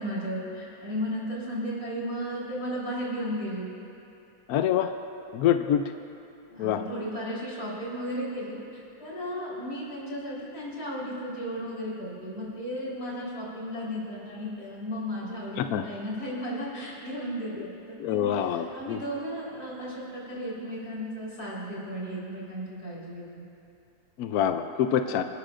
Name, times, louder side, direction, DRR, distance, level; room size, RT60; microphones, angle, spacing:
voice 1, 0.0-3.7 6.5-23.4, equal, 50° left, -7 dB, 4.8 m, -35 dB
voice 2, 4.5-4.9 5.3-5.8 6.6-6.8 15.6-15.8 17.6-17.7 18.0-19.0 24.2-25.2, left 10 dB, 75° left, 8 dB, 0.8 m, -25 dB
28.5 x 13.0 x 2.5 m, 2.8 s
omnidirectional pair, 2.1 m